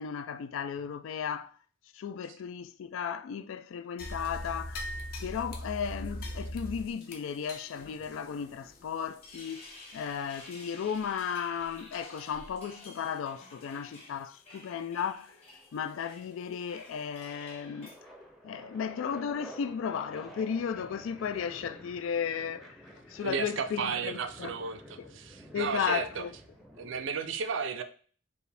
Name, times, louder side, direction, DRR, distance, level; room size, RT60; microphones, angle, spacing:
voice 1, 0.0-1.5 1.9-4.9 5.2-15.3 15.7-17.9 18.4-22.8 23.1-24.5 25.0-25.1 25.5-26.3, left 7 dB, 75° left, 0.3 m, -35 dB
sound 1, 4.0-10.6 10.9-11.0 11.6-11.8 12.3-12.6 12.9-13.0 13.6-13.7 16.1-16.2 16.8-16.9, equal, 45° left, 0.7 m, -41 dB
sound 2, 9.0-18.0, left 2 dB, 30° left, 1.2 m, -51 dB
sound 3, 9.2-10.3 12.1-13.4 14.4-14.8 15.1-27.1, equal, ahead, 0.6 m, -51 dB
voice 2, 23.2-26.2 26.8-27.8, right 5 dB, 65° right, 0.4 m, -33 dB
4.7 x 2.6 x 3.3 m
head